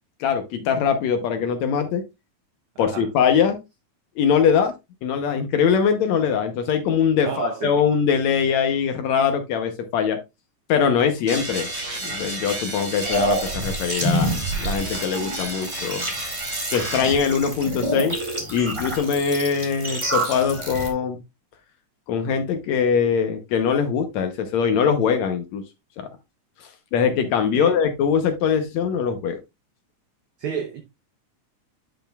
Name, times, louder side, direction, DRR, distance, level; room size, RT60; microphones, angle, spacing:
voice 1, 0.2-2.0 2.8-3.6 4.2-4.7 5.0-10.2 10.7-11.7 12.0-16.1 16.7-18.2 18.5-21.2 22.1-25.6 26.0-26.1 26.9-29.4, left 7 dB, 75° left, 2.1 m, -22 dB
voice 2, 2.8-3.1 7.2-7.7 27.5-27.8 30.4-30.8, right 7 dB, 75° right, 1.2 m, -30 dB
sound 1, 11.3-17.0, right 1 dB, 30° right, 4.7 m, -32 dB
sound 2, 13.0-20.9, right 1 dB, 10° right, 1.6 m, -28 dB
10.5 x 5.6 x 2.3 m
omnidirectional pair, 3.4 m